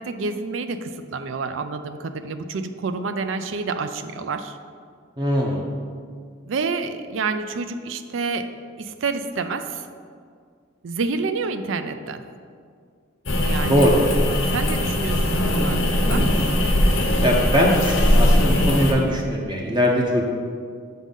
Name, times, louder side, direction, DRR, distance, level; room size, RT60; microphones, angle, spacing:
voice 1, 0.0-4.6 6.5-8.5 8.8-9.9 10.8-12.2 13.4-13.9 14.5-16.2, right 4 dB, 75° right, 10 dB, 0.4 m, -28 dB
voice 2, 5.2-5.6 13.7-14.0 17.2-20.2, equal, 20° right, -1 dB, 0.7 m, -20 dB
sound 1, 13.2-18.9, left 1 dB, 80° left, 1.1 m, -20 dB
7.2 x 3.8 x 5.4 m, 2.1 s
head